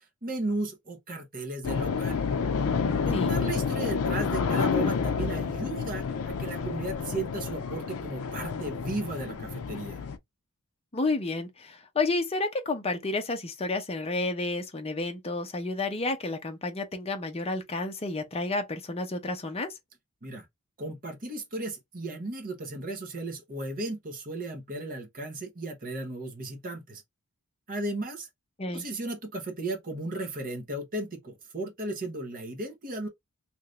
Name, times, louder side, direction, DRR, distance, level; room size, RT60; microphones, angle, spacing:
voice 1, 0.0-2.2 3.0-10.0 20.2-20.5 20.8-27.0 27.7-28.3 28.7-33.1, right 2 dB, 40° right, 1.0 m, -35 dB
sound 1, 1.6-10.2, left 5 dB, 70° left, 0.4 m, -29 dB
voice 2, 10.9-19.8 28.6-28.8, left 2 dB, 25° left, 0.7 m, -31 dB
2.9 x 2.5 x 3.1 m
head